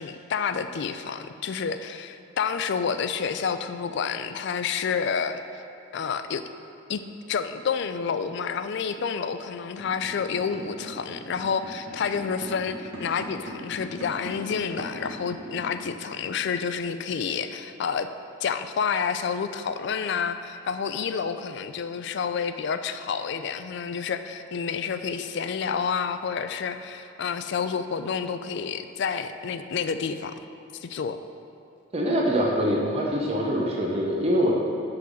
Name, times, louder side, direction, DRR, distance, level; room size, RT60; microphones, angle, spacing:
voice 1, 0.0-5.4 5.9-6.4 6.9-7.0 7.3-18.1 18.4-30.4 30.8-31.2, left 6 dB, 55° left, 10 dB, 0.4 m, -29 dB
sound 1, 9.6-15.8, right 1 dB, 65° right, 1.6 m, -39 dB
voice 2, 31.9-34.5, equal, 30° right, -2 dB, 0.8 m, -24 dB
8.2 x 4.0 x 6.4 m, 2.8 s
head